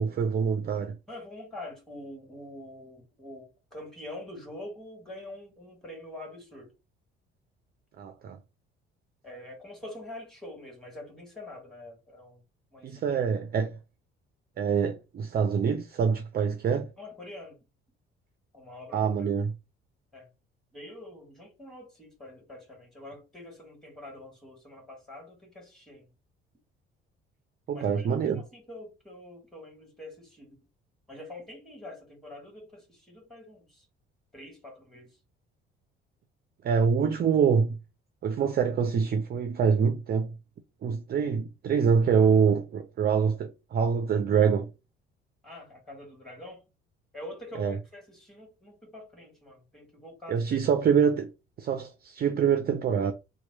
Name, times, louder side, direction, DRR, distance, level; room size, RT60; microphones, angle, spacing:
voice 1, 0.0-1.0 8.0-8.4 12.8-13.8 14.6-16.9 18.9-19.5 27.7-28.4 36.6-37.8 38.2-40.3 40.8-44.7 47.6-47.8 50.3-51.3 51.6-53.1, right 6 dB, 30° right, 0.5 m, -25 dB
voice 2, 1.1-6.7 9.2-12.4 12.7-13.1 17.0-17.6 18.5-19.0 20.1-20.3 20.7-26.1 27.7-30.6 31.1-33.8 34.3-35.1 45.4-46.6 47.1-50.4, left 1 dB, ahead, 1.7 m, -45 dB
2.9 x 2.3 x 4.0 m
figure-of-eight pair, 50°, 31 cm